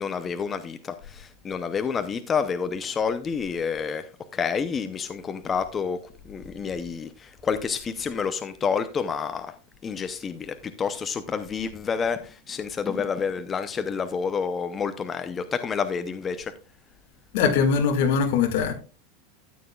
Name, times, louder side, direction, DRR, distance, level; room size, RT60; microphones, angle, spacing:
voice 1, 0.0-9.5 9.8-16.5, left 6 dB, 20° left, 0.6 m, -29 dB
voice 2, 17.3-18.7, left 6 dB, 60° left, 1.9 m, -21 dB
13.5 x 9.0 x 2.3 m
supercardioid pair, 160°, 0 cm